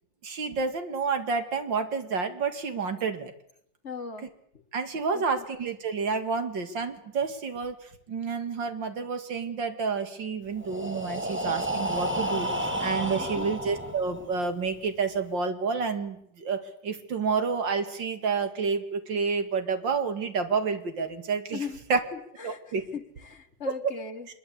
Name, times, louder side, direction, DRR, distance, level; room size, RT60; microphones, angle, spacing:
voice 1, 0.2-3.3 4.7-7.8 8.1-21.6 21.9-22.0 22.4-22.8 23.7-23.9, right 5 dB, 85° right, 8 dB, 2.9 m, -29 dB
voice 2, 3.8-4.3 4.5-4.6 5.1-5.2 13.3-13.5 21.5-21.8 22.1-24.3, left 6 dB, 40° left, 5 dB, 2.2 m, -38 dB
Breathing, 10.6-14.4, equal, 5° right, 2.2 m, -31 dB
24.5 x 22.0 x 8.4 m, 0.70 s
omnidirectional pair, 2.0 m